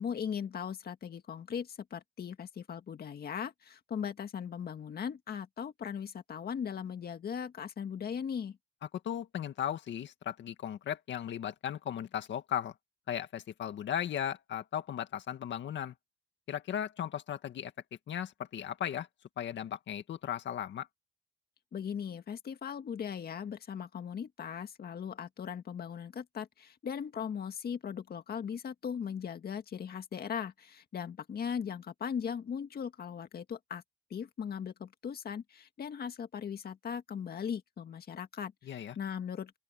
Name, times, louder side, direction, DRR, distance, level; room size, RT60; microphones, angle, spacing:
voice 1, 0.0-8.6 21.7-33.8 34.1-39.6, left 7 dB, 50° left, 1.9 m, -38 dB
voice 2, 9.0-12.7 13.1-15.9 16.5-17.7 18.1-19.1 19.4-20.9 38.7-38.9, left 10 dB, 65° left, 2.0 m, -36 dB
open air
cardioid pair, 90°, 20 cm